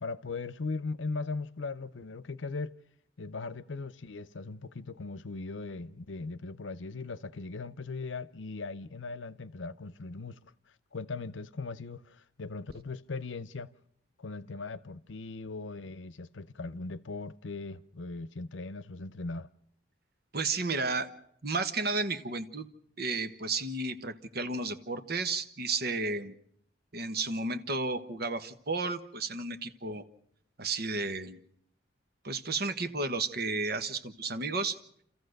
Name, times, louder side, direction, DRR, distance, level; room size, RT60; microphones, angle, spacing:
voice 1, 0.0-2.8 3.2-10.4 10.9-13.7 14.2-19.5, left 3 dB, 90° left, 0.7 m, -39 dB
voice 2, 20.3-21.1 21.4-22.7 23.0-26.3 26.9-30.0 30.6-31.4 32.2-34.8, right 3 dB, 60° right, 1.2 m, -32 dB
29.0 x 14.5 x 6.5 m
head